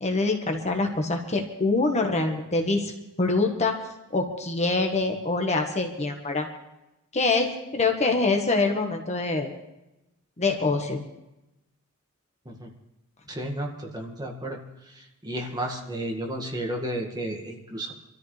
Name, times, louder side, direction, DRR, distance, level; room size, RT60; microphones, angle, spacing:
voice 1, 0.0-3.7 4.1-6.5 7.1-9.5 10.4-11.0, left 3 dB, 30° left, 3 dB, 1.5 m, -25 dB
voice 2, 13.3-14.6 15.2-17.9, right 1 dB, 20° right, 1 dB, 2.0 m, -32 dB
25.0 x 13.5 x 3.3 m, 0.92 s
head